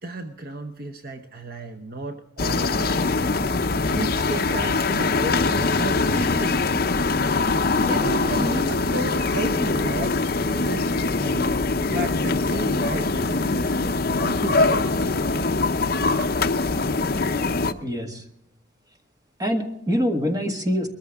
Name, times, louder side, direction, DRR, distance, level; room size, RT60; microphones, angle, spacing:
voice 1, 0.0-3.4 3.9-6.6 7.8-10.2 10.5-11.6 11.9-13.8 14.2-15.5 15.9-16.2, right 2 dB, 50° right, 5 dB, 0.8 m, -33 dB
sound 1, 2.4-17.7, left 3 dB, 50° left, 0.7 m, -23 dB
voice 2, 17.8-18.2 19.4-20.9, equal, 20° right, 4 dB, 1.5 m, -24 dB
21.5 x 14.0 x 3.6 m, 0.76 s
head